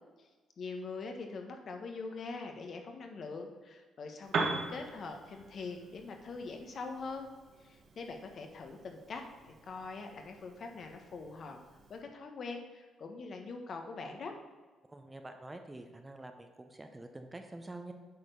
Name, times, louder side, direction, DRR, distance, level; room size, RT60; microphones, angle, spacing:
voice 1, 0.6-7.3 7.6-11.6 11.9-14.3, left 4 dB, 55° left, 4 dB, 1.2 m, -43 dB
Piano, 4.2-12.0, right 3 dB, 60° right, 1.4 m, -42 dB
voice 2, 14.9-17.9, right 2 dB, 15° right, 6 dB, 0.7 m, -47 dB
8.4 x 4.5 x 5.4 m, 1.3 s
cardioid pair, 90°, 0 cm